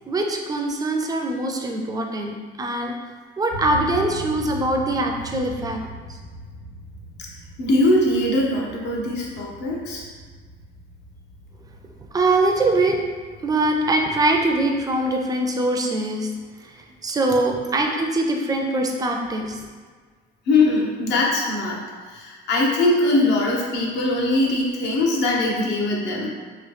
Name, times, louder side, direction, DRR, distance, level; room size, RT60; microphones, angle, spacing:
voice 1, 0.1-2.9 3.4-5.8 12.1-13.0 13.4-16.3 17.0-19.7, right 2 dB, 20° right, 2 dB, 0.4 m, -22 dB
sound 1, 3.5-15.1, right 1 dB, 40° left, 0.9 m, -40 dB
voice 2, 7.6-10.0 20.5-21.8 22.1-26.3, left 2 dB, 65° left, -2 dB, 0.8 m, -21 dB
3.0 x 2.6 x 3.2 m, 1.5 s
cardioid pair, 125°, 19 cm